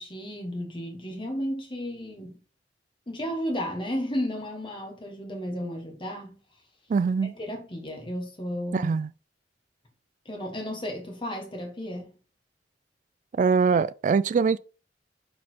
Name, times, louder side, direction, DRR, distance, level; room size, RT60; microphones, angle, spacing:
voice 1, 0.0-2.4 3.1-6.3 7.3-8.9 10.2-12.2, equal, 30° left, 1.6 m, -33 dB
voice 2, 6.9-7.3 8.7-9.1 13.3-14.6, right 5 dB, 45° right, 0.3 m, -23 dB
6.2 x 4.3 x 4.6 m
head